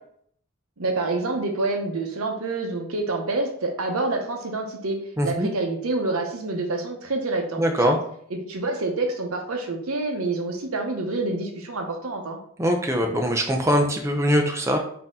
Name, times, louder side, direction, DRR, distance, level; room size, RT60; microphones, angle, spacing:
voice 1, 0.8-8.0 8.3-12.4, right 2 dB, 75° right, 3 dB, 0.8 m, -27 dB
voice 2, 5.2-5.5 7.6-8.0 12.6-14.8, equal, 15° right, 3 dB, 0.5 m, -22 dB
4.2 x 2.8 x 3.7 m, 0.64 s
head